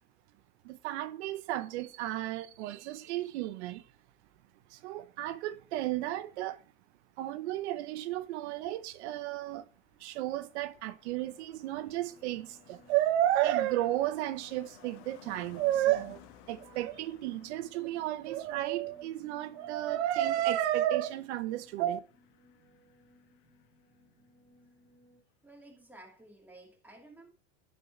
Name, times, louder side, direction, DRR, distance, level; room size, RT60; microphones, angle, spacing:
voice 1, 0.6-3.8 4.7-6.6 7.2-9.7 10.0-16.2 16.5-22.0, right 13 dB, 80° right, 0.9 m, -32 dB
Car passing by, 9.5-24.3 24.6-24.9, left 10 dB, 65° left, 1.6 m, -59 dB
sound 1, 12.0-25.2, left 1 dB, 40° right, 2.9 m, -64 dB
voice 2, 25.4-27.3, right 2 dB, 5° right, 2.5 m, -53 dB
10.5 x 4.7 x 4.6 m
supercardioid pair, 135°, 33 cm